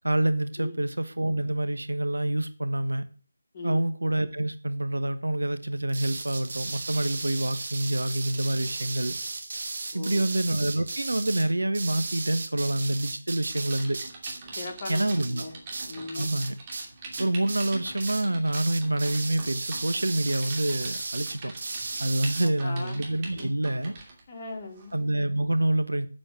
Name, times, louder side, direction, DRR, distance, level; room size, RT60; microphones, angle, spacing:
voice 1, 0.0-3.0 3.6-9.1 9.9-14.0 14.9-15.5 16.1-16.6 17.2-21.5 22.0-24.0 24.9-26.1, right 1 dB, 75° right, 1.2 m, -27 dB
sound 1, 5.9-16.9 17.1-17.7 18.0-18.3 18.5-22.5, right 3 dB, 45° right, 1.9 m, -35 dB
voice 2, 9.9-10.2 14.6-15.5 15.9-16.3 22.4-23.0 23.4-23.5 24.3-24.9, left 2 dB, 30° left, 2.8 m, -38 dB
Typing, 13.5-24.2 24.8-25.0, right 3 dB, 20° right, 2.6 m, -44 dB
8.6 x 7.7 x 7.8 m
figure-of-eight pair, 160°, 0 cm